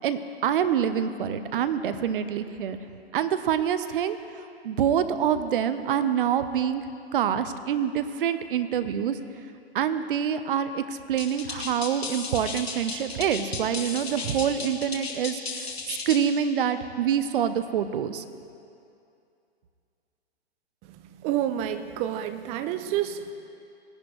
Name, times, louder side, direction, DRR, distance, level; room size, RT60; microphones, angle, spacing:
voice 1, 0.0-2.8 3.1-4.2 4.6-6.8 7.1-9.2 9.7-15.4 15.9-18.2, right 8 dB, 55° right, 11 dB, 0.8 m, -26 dB
sound 1, 11.2-16.3, left 4 dB, 75° left, 2.0 m, -35 dB
voice 2, 21.2-23.3, right 11 dB, 20° right, 10 dB, 0.4 m, -29 dB
19.0 x 10.5 x 3.2 m, 2.6 s
figure-of-eight pair, 120°, 32 cm